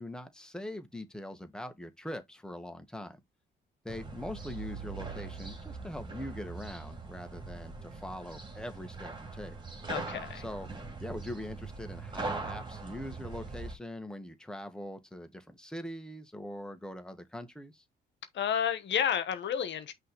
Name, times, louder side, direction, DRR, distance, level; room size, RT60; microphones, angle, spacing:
voice 1, 0.0-3.2 3.8-9.5 10.3-10.7 11.0-17.8, left 1 dB, 5° left, 1.6 m, -42 dB
sound 1, 3.9-13.7, right 3 dB, 25° right, 2.5 m, -41 dB
voice 2, 9.9-10.4 18.3-19.9, left 8 dB, 65° left, 1.2 m, -31 dB
5.7 x 3.3 x 5.3 m
cardioid pair, 90°, 20 cm